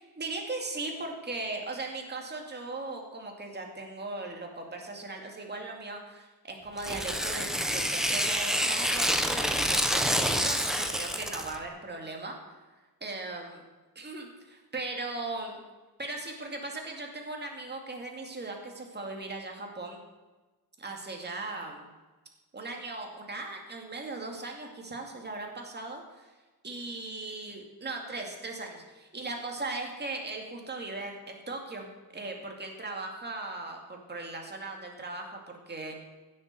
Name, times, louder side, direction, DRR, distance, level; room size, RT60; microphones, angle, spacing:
voice 1, 0.2-12.4 13.0-13.6 14.0-15.6 16.0-20.0 20.8-21.9 22.5-26.3 26.6-36.0, right 2 dB, 25° right, 1 dB, 2.3 m, -38 dB
Tearing, 6.8-11.6, equal, ahead, 0.9 m, -28 dB
16.0 x 7.6 x 6.9 m, 1.2 s
wide cardioid pair, 140°, 38 cm